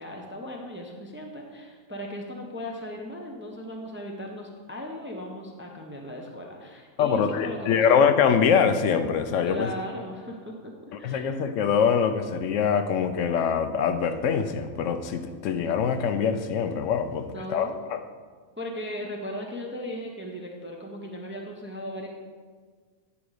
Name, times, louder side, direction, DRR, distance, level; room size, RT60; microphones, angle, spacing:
voice 1, 0.0-7.8 9.4-10.7 11.0-11.3 17.2-17.8 18.6-22.1, equal, 10° right, 1 dB, 0.5 m, -37 dB
voice 2, 7.0-9.7 11.0-18.0, left 7 dB, 70° left, 9 dB, 0.9 m, -24 dB
10.0 x 5.1 x 4.8 m, 1.5 s
omnidirectional pair, 1.5 m